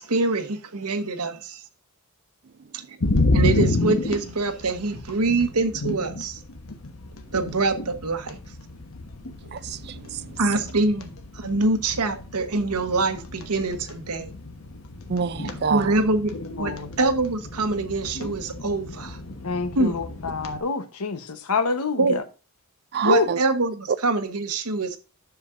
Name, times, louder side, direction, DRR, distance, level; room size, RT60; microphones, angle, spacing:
voice 1, 0.0-1.6 3.3-6.4 7.3-8.4 10.4-11.1 11.4-14.3 15.4-16.3 16.6-19.2 19.7-20.0 22.0-22.2 23.0-25.0, right 3 dB, 85° right, 1.2 m, -24 dB
sound 1, 3.0-20.6, left 2 dB, 65° left, 1.2 m, -30 dB
voice 2, 9.5-10.2 15.1-15.9 22.9-23.4, right 6 dB, 50° right, 0.5 m, -27 dB
voice 3, 16.6-16.9 19.4-22.2 23.0-23.3, left 4 dB, 85° left, 1.0 m, -26 dB
10.5 x 7.0 x 2.6 m
head